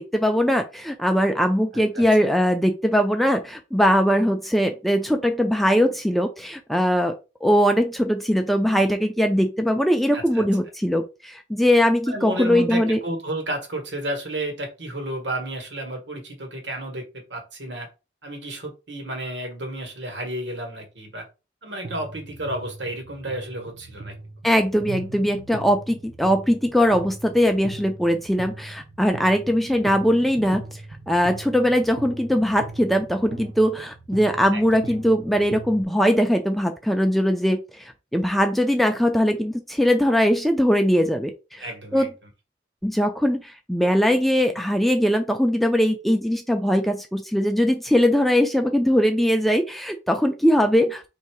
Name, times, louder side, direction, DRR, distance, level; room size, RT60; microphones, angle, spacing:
voice 1, 0.0-13.0 24.4-30.6 31.1-37.8 38.1-41.6 41.9-42.1 42.8-51.0, equal, ahead, 5 dB, 0.3 m, -21 dB
voice 2, 1.7-2.1 10.1-10.5 12.1-17.9 18.2-21.3 21.6-24.2 34.5-34.9 41.6-42.1, right 1 dB, 80° right, 3 dB, 1.4 m, -32 dB
sound 1, 21.8-35.8, right 2 dB, 60° right, 0.7 m, -40 dB
3.3 x 2.7 x 4.6 m, 0.29 s
head